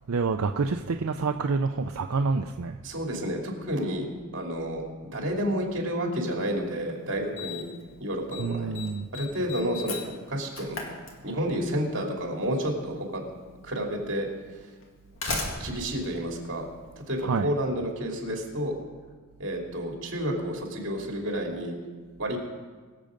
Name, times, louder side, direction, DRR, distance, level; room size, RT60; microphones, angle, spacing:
voice 1, 0.1-2.8 8.4-9.1 17.2-17.5, right 4 dB, 85° right, 5 dB, 0.5 m, -27 dB
voice 2, 2.8-4.0 4.3-4.8 5.1-7.6 8.0-8.8 9.1-10.8 11.2-13.2 13.6-14.3 15.6-16.7 17.1-18.7 19.4-21.7 22.2-22.4, equal, 60° right, 0 dB, 2.9 m, -30 dB
Slam, 6.5-6.6 7.4-7.8 8.1-8.4 8.7-11.7 12.8-12.9 13.8-13.9 14.8-17.2, left 3 dB, 65° left, 2.1 m, -36 dB
22.5 x 7.7 x 5.2 m, 1.5 s
head